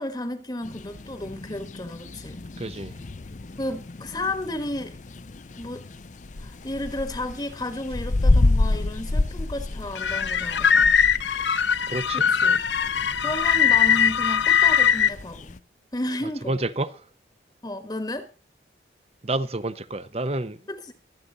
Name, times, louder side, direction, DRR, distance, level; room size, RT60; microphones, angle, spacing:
voice 1, 0.0-2.4 3.6-5.0 5.6-5.9 6.4-11.0 12.1-12.6 13.2-15.6 15.9-16.6 17.6-18.3 20.7-20.9, left 1 dB, 20° left, 1.3 m, -32 dB
sound 1, 0.6-15.6, left 2 dB, 40° left, 0.6 m, -29 dB
voice 2, 2.6-2.9 11.9-12.2 16.5-17.0 19.2-20.6, right 2 dB, 35° right, 0.8 m, -28 dB
sound 2, 10.0-15.1, left 8 dB, 75° left, 1.0 m, -21 dB
24.0 x 8.4 x 4.0 m
head